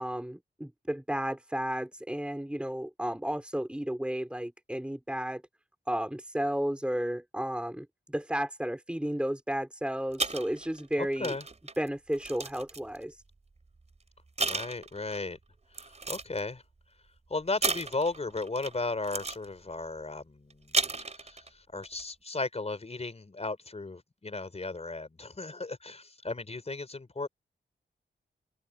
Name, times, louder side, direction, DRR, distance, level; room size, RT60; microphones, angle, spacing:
voice 1, 0.0-5.4 5.9-11.4 11.8-13.2, equal, 5° right, 3.5 m, -33 dB
sound 1, 10.1-13.0 13.8-14.0 14.4-15.2 15.7-16.4 17.6-18.8 19.0-19.4 20.5-21.5 21.8-22.0, right 3 dB, 35° right, 3.3 m, -33 dB
voice 2, 11.0-11.5 14.4-15.4 16.1-16.6 17.3-27.3, left 3 dB, 35° left, 5.1 m, -35 dB
wide cardioid pair, 80°, 19 cm